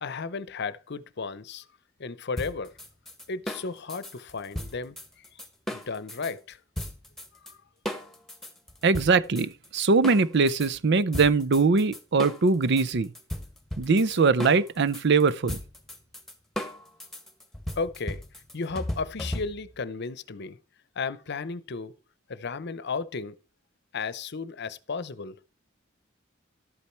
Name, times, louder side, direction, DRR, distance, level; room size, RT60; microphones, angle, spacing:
voice 1, 0.0-1.6 2.0-2.7 3.3-5.0 5.7-6.6 7.5-7.6 17.8-18.2 18.5-20.6 21.0-21.9 22.3-23.4 23.9-25.4, left 4 dB, 60° left, 0.8 m, -34 dB
sound 1, 2.4-6.3 6.8-7.5 7.9-10.7 11.1-19.8, left 1 dB, ahead, 1.6 m, -36 dB
voice 2, 8.8-13.1 13.8-15.6, right 4 dB, 60° right, 0.6 m, -22 dB
12.0 x 8.5 x 4.5 m
head